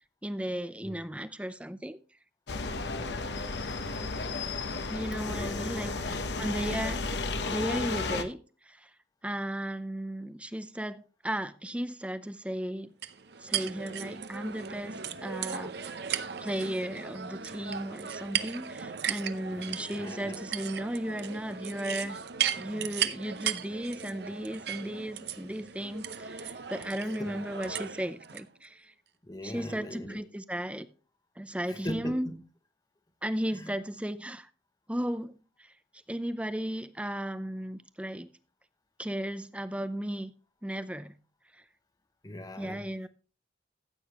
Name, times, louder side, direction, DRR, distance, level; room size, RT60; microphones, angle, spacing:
voice 1, 0.2-2.0 4.9-7.0 7.5-8.9 9.2-12.9 13.4-16.1 16.4-22.2 22.6-28.9 29.4-30.9 31.4-32.3 33.2-34.5 34.9-35.7 36.1-38.3 39.0-40.3 40.6-41.2 41.5-41.6 42.6-43.1, equal, 5° right, 0.5 m, -35 dB
sound 1, 2.5-8.2, left 3 dB, 65° left, 1.0 m, -33 dB
voice 2, 2.8-3.2 5.3-6.2 7.0-7.3 19.5-20.4 27.2-27.3 29.2-30.2 31.7-32.4 33.5-33.8 42.2-42.8, equal, 20° left, 1.1 m, -41 dB
sound 2, 13.0-28.4, right 8 dB, 60° right, 0.7 m, -36 dB
14.5 x 8.4 x 3.0 m
head